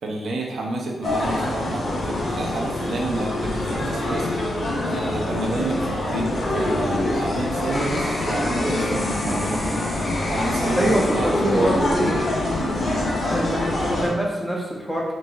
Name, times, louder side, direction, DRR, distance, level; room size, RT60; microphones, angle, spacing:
voice 1, 0.0-4.3 4.9-9.8 10.3-11.8, right 2 dB, 75° right, 0 dB, 0.8 m, -29 dB
sound 1, 1.0-14.1, left 1 dB, 60° left, 1.4 m, -25 dB
sound 2, 7.0-12.8 13.3-13.8, left 1 dB, 35° left, 0.6 m, -35 dB
voice 2, 10.7-12.3 13.3-15.1, right 1 dB, 5° right, -3 dB, 1.1 m, -24 dB
6.2 x 2.7 x 2.6 m, 1.2 s
cardioid pair, 85°, 0 cm